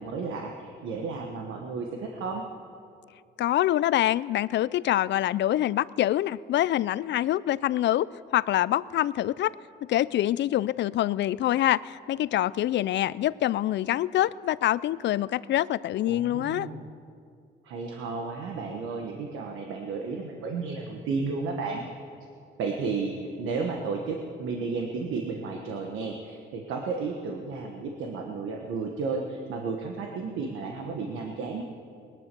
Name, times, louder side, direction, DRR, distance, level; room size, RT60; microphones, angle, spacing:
voice 1, 0.0-2.4 16.1-16.9 17.6-21.9 22.6-31.6, right 4 dB, 85° right, 2 dB, 1.3 m, -33 dB
voice 2, 3.4-9.5 9.8-16.7, left 13 dB, 65° left, 19 dB, 0.4 m, -25 dB
20.0 x 10.5 x 6.9 m, 2.4 s
cardioid pair, 90°, 20 cm